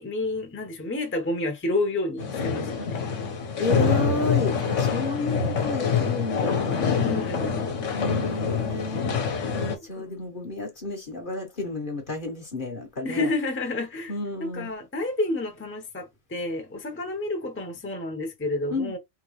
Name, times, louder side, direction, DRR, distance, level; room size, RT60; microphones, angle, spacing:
voice 1, 0.0-3.0 4.7-5.0 7.0-7.5 10.0-10.2 13.0-14.1 14.4-19.0, left 2 dB, 10° left, 0.8 m, -30 dB
sound 1, 2.2-9.8, left 6 dB, 70° left, 1.3 m, -25 dB
voice 2, 3.6-6.9 7.9-9.0 9.5-13.3 14.1-14.7 18.7-18.9, left 2 dB, 45° left, 1.1 m, -32 dB
3.8 x 2.9 x 3.1 m
omnidirectional pair, 1.3 m